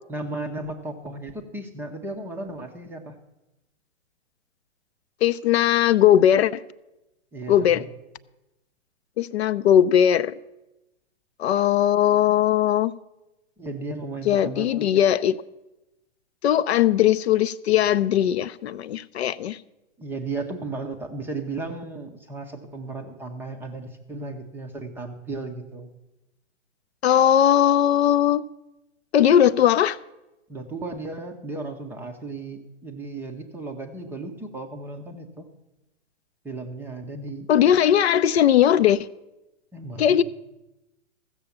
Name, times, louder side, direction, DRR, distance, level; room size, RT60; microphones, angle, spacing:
voice 1, 0.1-3.2 7.3-7.9 13.6-14.9 20.0-25.9 30.5-35.5 36.4-37.5 39.7-40.2, right 2 dB, 5° right, 0.5 m, -35 dB
voice 2, 5.2-6.6 7.5-7.8 9.2-10.3 11.4-12.9 14.3-15.4 16.4-19.6 27.0-28.5 29.1-30.0 37.5-39.1 40.0-40.2, left 10 dB, 60° left, 0.5 m, -19 dB
14.5 x 6.8 x 7.0 m
hypercardioid pair, 135°, 37 cm